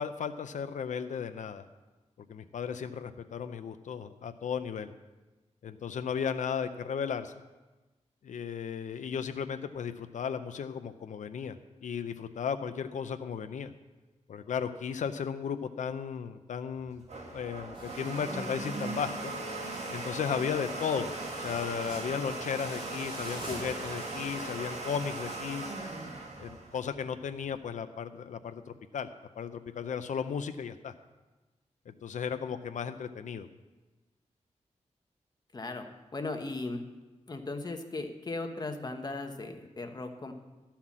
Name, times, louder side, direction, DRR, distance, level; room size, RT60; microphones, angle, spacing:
voice 1, 0.0-1.7 2.3-4.9 5.6-7.3 8.2-11.6 11.8-13.7 14.3-17.0 17.3-19.3 19.9-21.1 21.4-25.7 26.4-28.6 28.9-29.1 29.3-30.9 31.9-33.5, left 7 dB, 90° left, 9 dB, 0.5 m, -35 dB
Domestic sounds home sounds, 16.7-27.4, right 2 dB, 60° right, 1.9 m, -39 dB
sound 1, 17.7-25.4, right 1 dB, 45° right, 3.2 m, -47 dB
voice 2, 35.5-36.8 37.3-40.3, left 2 dB, 35° left, 5 dB, 1.1 m, -37 dB
12.5 x 5.8 x 7.3 m, 1.1 s
wide cardioid pair, 105°, 12 cm